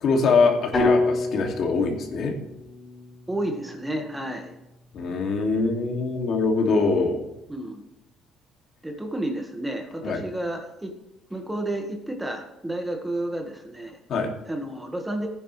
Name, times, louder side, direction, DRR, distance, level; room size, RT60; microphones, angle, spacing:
voice 1, 0.0-2.3 4.9-7.2 10.0-10.2 14.1-14.3, left 4 dB, 55° left, 2 dB, 2.4 m, -23 dB
sound 1, 0.7-4.8, left 2 dB, 30° left, 5.3 m, -28 dB
voice 2, 3.3-4.5 7.5-7.8 8.8-10.9 11.3-14.0 14.5-15.3, right 1 dB, 10° right, 3 dB, 1.6 m, -31 dB
16.0 x 9.8 x 3.3 m, 0.92 s
cardioid pair, 145°, 0 cm